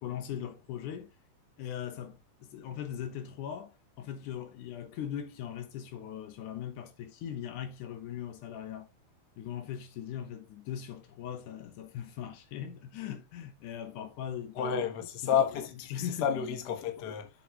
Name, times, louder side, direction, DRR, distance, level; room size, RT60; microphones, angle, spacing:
voice 1, 0.0-1.1 1.6-8.9 9.4-15.0 15.2-15.3 15.9-16.3, left 9 dB, 80° left, 2.6 m, -40 dB
voice 2, 14.6-15.9 16.2-17.3, left 8 dB, 60° left, 1.0 m, -30 dB
7.6 x 5.6 x 3.0 m
omnidirectional pair, 3.5 m